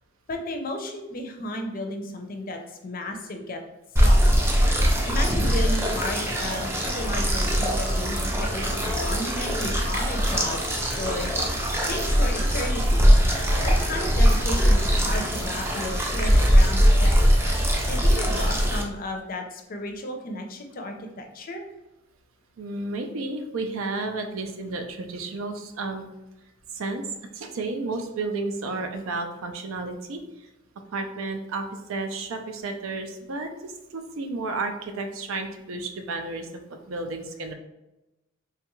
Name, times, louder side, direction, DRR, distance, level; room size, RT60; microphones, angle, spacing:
voice 1, 0.3-3.6 4.0-4.8 5.0-13.1 13.6-17.3 17.6-21.6, left 1 dB, 45° left, 4 dB, 0.5 m, -34 dB
sound 1, 4.0-18.8, equal, 10° right, 0.4 m, -21 dB
voice 2, 22.6-26.0 26.7-27.1 27.3-30.2 30.9-36.5 36.9-37.5, right 3 dB, 85° right, 5 dB, 0.5 m, -32 dB
3.3 x 2.3 x 3.0 m, 0.97 s
head